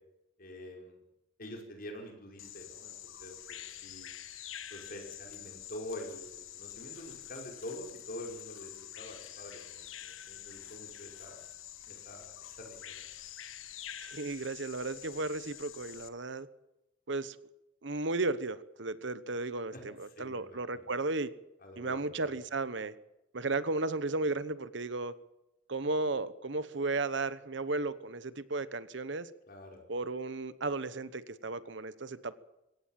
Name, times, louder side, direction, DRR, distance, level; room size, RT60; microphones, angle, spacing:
voice 1, 0.4-1.0 1.4-4.1 4.7-11.4 11.9-12.9 19.7-20.8 21.6-22.3 29.5-29.8, left 1 dB, 45° left, 2 dB, 5.5 m, -46 dB
Bird vocalization bird call bird song, 2.4-16.1, left 11 dB, 80° left, 1.4 m, -47 dB
voice 2, 14.0-16.5 17.1-17.4 17.8-21.3 21.8-22.9 23.3-25.1 25.7-29.3 29.9-32.4, right 3 dB, 60° right, 15 dB, 1.0 m, -34 dB
23.0 x 17.5 x 7.6 m, 0.91 s
head